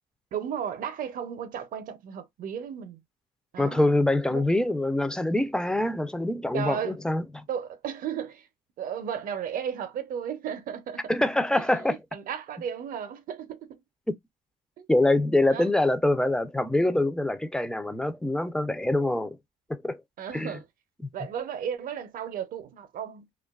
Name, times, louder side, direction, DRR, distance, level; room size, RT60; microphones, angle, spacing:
voice 1, 0.3-3.0 3.5-3.9 4.3-4.4 6.5-7.0 7.5-8.5 8.8-11.1 11.5-13.8 14.8-14.9 15.5-15.7 20.2-20.6 21.1-23.3, right 8 dB, 55° right, 0.6 m, -34 dB
voice 2, 3.6-7.4 11.1-12.0 14.1-14.2 14.9-19.4 19.7-20.0 20.3-20.5 21.0-21.1, left 1 dB, 5° left, 0.3 m, -25 dB
2.5 x 2.2 x 2.3 m
cardioid pair, 110°, 17 cm